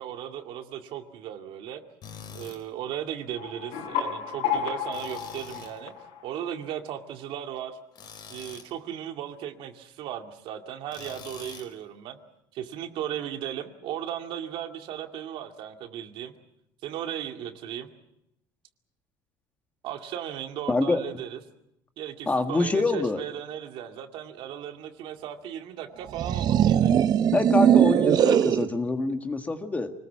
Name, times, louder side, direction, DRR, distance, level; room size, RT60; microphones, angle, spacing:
voice 1, 0.0-1.8 2.3-5.9 6.2-7.8 8.3-12.2 12.5-16.3 16.8-17.9 19.8-21.4 22.0-26.9, right 10 dB, 70° right, 5 dB, 2.3 m, -36 dB
Tools, 2.0-2.6 4.9-5.8 7.9-8.7 10.9-11.7, left 7 dB, 50° left, 4.1 m, -44 dB
sound 1, 3.4-6.7, left 7 dB, 80° left, 6.3 m, -32 dB
voice 2, 20.7-21.0 22.3-23.2 27.3-29.9, left 3 dB, 15° left, 7 dB, 1.7 m, -25 dB
sound 2, 26.1-28.7, right 9 dB, 45° right, 0.8 m, -20 dB
26.0 x 19.5 x 7.4 m, 0.80 s
cardioid pair, 135°, 9 cm